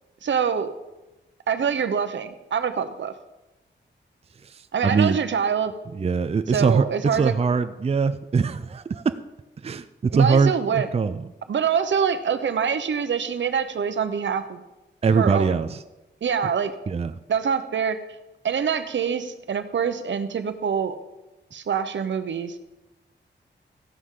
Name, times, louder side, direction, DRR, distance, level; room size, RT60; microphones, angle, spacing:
voice 1, 0.2-0.7 1.5-3.1 4.7-5.7 6.5-7.3 10.1-10.9 11.5-14.6 15.1-15.6 16.2-16.7 17.3-18.0 18.4-21.0 21.5-22.6, right 7 dB, 75° right, 10 dB, 0.9 m, -25 dB
voice 2, 4.4-5.2 5.9-9.2 9.6-11.3 15.0-15.8 16.9-17.1, right 5 dB, 30° right, 11 dB, 0.5 m, -22 dB
14.5 x 11.0 x 3.8 m, 1.0 s
wide cardioid pair, 105°, 19 cm